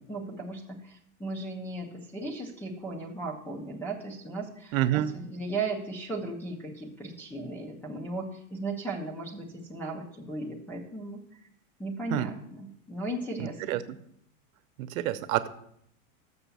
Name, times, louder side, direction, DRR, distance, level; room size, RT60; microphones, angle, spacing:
voice 1, 0.0-11.2 11.8-13.8, right 2 dB, 5° left, 0 dB, 0.3 m, -36 dB
voice 2, 4.7-5.1 12.1-12.3 13.4-14.0 14.8-15.5, right 13 dB, 85° right, 10 dB, 0.8 m, -28 dB
6.9 x 6.3 x 6.8 m, 0.71 s
supercardioid pair, 170°, 41 cm